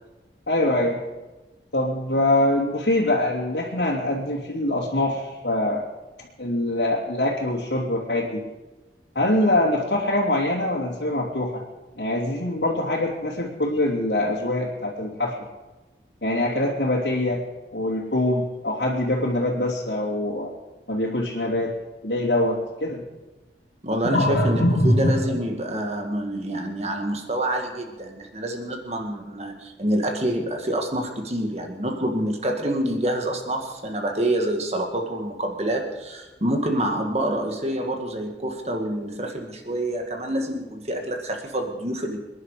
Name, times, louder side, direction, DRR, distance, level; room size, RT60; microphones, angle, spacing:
voice 1, 0.5-1.0 1.7-5.8 6.4-8.5 9.1-11.6 12.0-15.3 16.2-17.4 17.7-20.5 20.9-21.7 22.0-23.0 24.0-25.3, left 1 dB, 85° left, -7 dB, 2.9 m, -23 dB
voice 2, 23.8-42.2, right 1 dB, 35° right, 3 dB, 2.1 m, -27 dB
26.5 x 11.0 x 5.0 m, 1.1 s
head